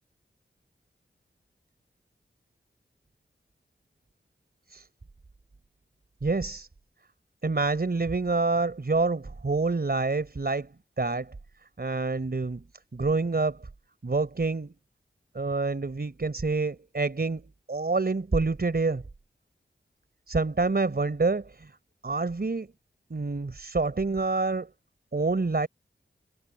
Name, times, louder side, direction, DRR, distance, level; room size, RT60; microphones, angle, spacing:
voice 1, 6.2-6.7 7.4-11.3 11.8-12.6 12.9-13.6 14.0-14.7 15.3-19.0 20.3-21.7 22.0-22.7 23.1-24.7 25.1-25.7, right 3 dB, 55° right, 4.1 m, -27 dB
cardioid pair, 45°, 20 cm